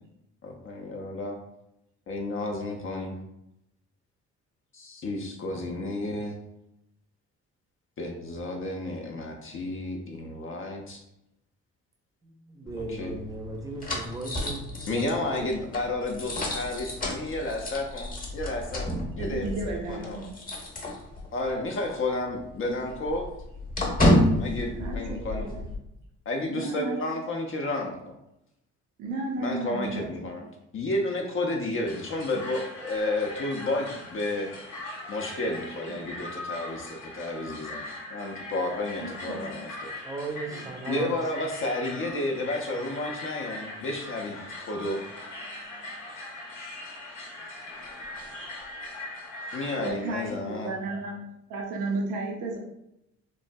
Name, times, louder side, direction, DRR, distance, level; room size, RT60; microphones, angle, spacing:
voice 1, 0.4-1.4 2.1-3.2 4.7-6.4 8.0-11.0 12.8-13.1 14.9-18.1 18.3-20.2 21.3-23.3 24.4-25.5 26.3-28.2 29.4-30.4 30.7-34.5 35.1-39.9 40.9-45.0 49.5-50.8, left 2 dB, 45° left, 1 dB, 0.5 m, -31 dB
voice 2, 12.2-15.5 40.0-41.1, right 2 dB, 10° right, 2 dB, 0.5 m, -37 dB
sound 1, 12.7-21.5 21.8-21.9 22.3-25.8, left 1 dB, 30° left, 0.8 m, -30 dB
voice 3, 19.1-20.3 24.8-25.6 26.5-27.0 29.0-30.3 35.9-36.0 36.5-36.6 39.0-39.5 40.5-41.0 49.8-51.2 51.5-52.6, right 2 dB, 85° right, 0 dB, 0.6 m, -34 dB
sound 2, 31.8-49.9, left 2 dB, 90° left, 0.7 m, -40 dB
3.1 x 2.2 x 2.5 m, 0.83 s
cardioid pair, 90°, 30 cm